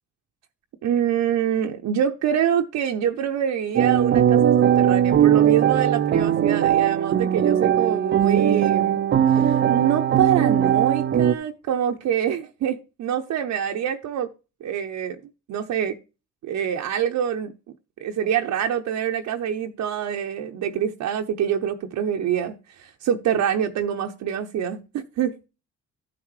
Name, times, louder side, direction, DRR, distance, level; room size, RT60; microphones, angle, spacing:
voice 1, 0.8-9.0 9.3-14.3 14.6-15.2 15.5-16.0 16.4-17.5 18.0-25.4, right 9 dB, 70° right, 0.7 m, -25 dB
sound 1, 3.8-11.3, right 10 dB, 40° right, 0.5 m, -19 dB
13.0 x 5.9 x 3.2 m
cardioid pair, 90°, 30 cm